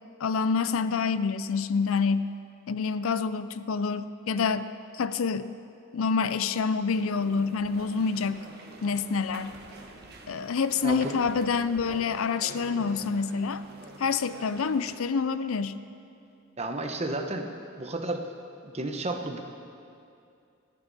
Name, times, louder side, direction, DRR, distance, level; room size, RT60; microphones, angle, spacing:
voice 1, 0.2-2.3 2.7-5.5 5.9-8.5 8.8-9.6 10.3-13.6 14.0-15.8, left 5 dB, 75° left, 13 dB, 0.5 m, -27 dB
sound 1, 6.9-15.0, right 1 dB, 50° right, 1.4 m, -46 dB
voice 2, 10.8-11.2 16.6-17.5 17.8-18.2 18.6-19.4, right 2 dB, 30° right, 4 dB, 1.0 m, -32 dB
27.5 x 9.2 x 4.1 m, 2.6 s
head